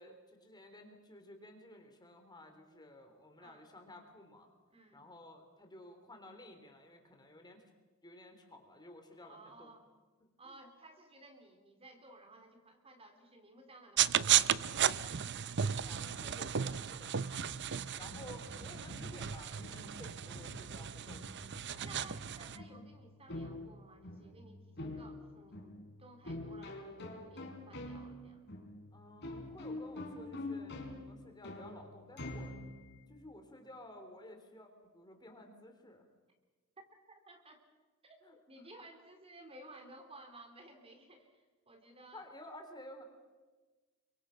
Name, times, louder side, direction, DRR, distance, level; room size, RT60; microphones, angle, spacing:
voice 1, 0.0-4.5 4.9-7.6 8.0-9.7 10.4-10.6 15.8-17.2 17.9-21.7 28.9-32.5 33.1-36.1 38.2-38.3 42.1-43.0, left 1 dB, 20° left, 5 dB, 3.4 m, -54 dB
voice 2, 4.7-5.0 9.2-9.9 10.4-15.1 17.1-17.4 21.8-28.5 37.1-37.6 38.0-38.2 38.5-42.2, right 2 dB, 30° right, 5 dB, 3.5 m, -56 dB
sound 1, 14.0-22.6, right 9 dB, 55° right, 0.7 m, -34 dB
sound 2, 17.4-33.0, left 2 dB, 55° left, 4.4 m, -47 dB
30.0 x 24.0 x 5.8 m, 1.3 s
head